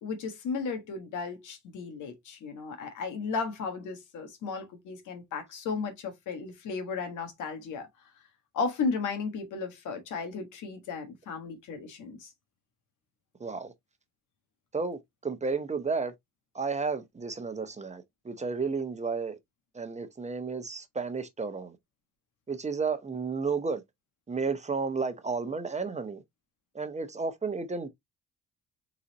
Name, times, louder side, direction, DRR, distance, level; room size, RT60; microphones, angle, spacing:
voice 1, 0.0-7.9 8.5-12.3, left 4 dB, 80° left, 1.4 m, -35 dB
voice 2, 13.4-13.7 14.7-16.1 16.5-19.4 19.7-21.8 22.5-23.8 24.3-26.2 26.7-27.9, right 4 dB, 25° right, 0.8 m, -32 dB
4.0 x 3.9 x 2.8 m
cardioid pair, 90°, 30 cm